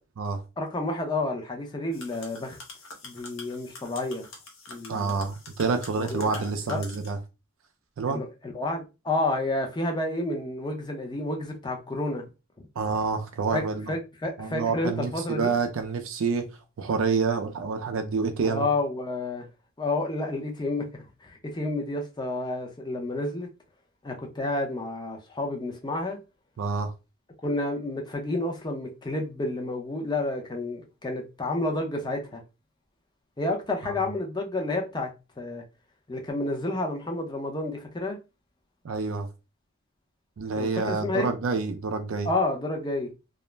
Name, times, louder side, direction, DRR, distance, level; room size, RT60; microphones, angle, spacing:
voice 1, 0.6-2.6 3.0-4.3 4.7-5.2 6.0-6.4 6.7-6.8 8.1-12.2 13.5-15.5 18.4-19.5 19.8-20.9 21.2-23.5 24.0-26.2 27.4-32.4 33.4-35.1 35.4-35.6 36.1-38.2 40.5-41.3 42.2-43.1, left 2 dB, 20° left, 0.6 m, -30 dB
sound 1, 1.9-7.1, left 2 dB, 65° left, 0.7 m, -45 dB
voice 2, 4.9-7.2 8.0-8.2 12.8-13.8 14.4-16.5 16.8-18.7 26.6-26.9 33.8-33.9 38.8-39.3 40.4-42.3, right 4 dB, 65° right, 0.4 m, -28 dB
2.4 x 2.0 x 3.1 m
head